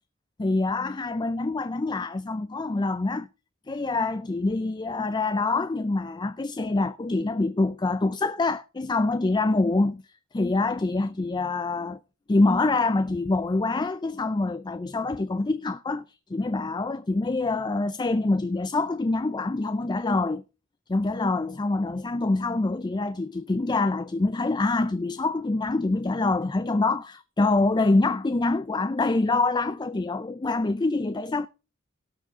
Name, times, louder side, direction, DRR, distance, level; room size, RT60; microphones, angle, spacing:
voice 1, 0.4-3.3 3.7-10.0 10.3-12.0 12.3-16.0 16.3-20.4 20.9-31.5, left 3 dB, 20° left, 0.4 m, -25 dB
17.5 x 6.3 x 3.6 m
head